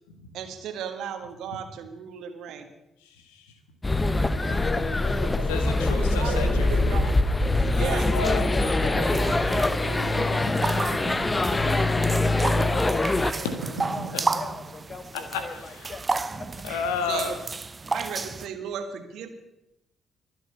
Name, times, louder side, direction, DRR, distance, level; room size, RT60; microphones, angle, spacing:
voice 1, 0.3-2.7 5.9-7.1 7.7-8.1 17.1-17.3 17.9-19.3, right 8 dB, 65° right, 7 dB, 1.6 m, -35 dB
voice 2, 3.0-3.6 5.5-7.0 8.1-8.5 13.4-13.6 14.1-14.3 15.1-15.9 16.6-17.4, left 5 dB, 80° left, 7 dB, 1.6 m, -32 dB
sound 1, 3.8-13.3, left 2 dB, 25° left, 0.9 m, -23 dB
sound 2, 4.2-14.9, right 4 dB, 85° right, 2.2 m, -38 dB
voice 3, 4.3-5.4 5.8-5.9 7.4-16.7, left 4 dB, 45° left, 9 dB, 1.8 m, -39 dB
sound 3, 9.1-18.5, right 3 dB, 30° right, 0.9 m, -33 dB
23.5 x 7.9 x 5.6 m, 0.89 s
hypercardioid pair, 40°, 0 cm